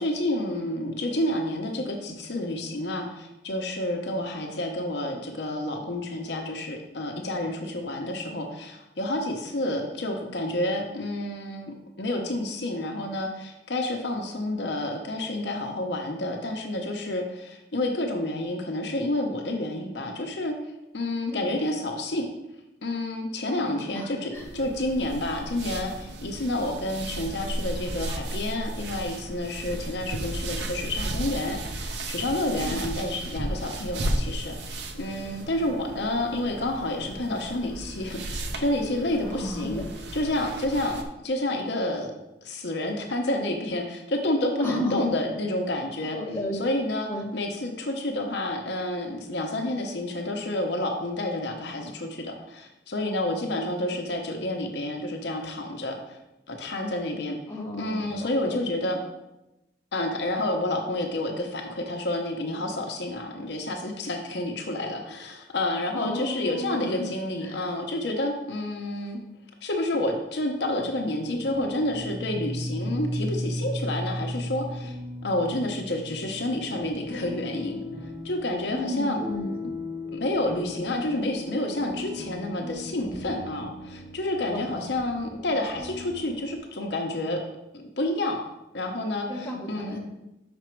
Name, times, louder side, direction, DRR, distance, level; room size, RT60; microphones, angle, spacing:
voice 1, 0.0-20.6 20.9-22.3 22.8-39.8 40.1-42.1 42.4-46.2 46.6-56.2 56.5-57.4 57.8-59.0 59.9-69.2 69.6-75.0 75.2-77.8 78.2-79.2 80.1-87.4 87.7-88.4 88.7-90.0, left 1 dB, 65° left, 2 dB, 0.8 m, -29 dB
voice 2, 23.5-24.5 32.6-32.8 39.2-39.8 44.6-45.1 46.1-46.6 47.1-47.3 57.5-58.8 65.9-67.1 67.4-67.6 78.7-79.7 84.5-84.9 89.3-90.0, left 1 dB, 10° left, -4 dB, 1.3 m, -33 dB
sound 1, 24.3-41.0, right 1 dB, 65° right, 0.7 m, -35 dB
sound 2, 70.7-86.6, left 1 dB, 25° right, 0.8 m, -36 dB
6.0 x 5.2 x 4.5 m, 0.94 s
head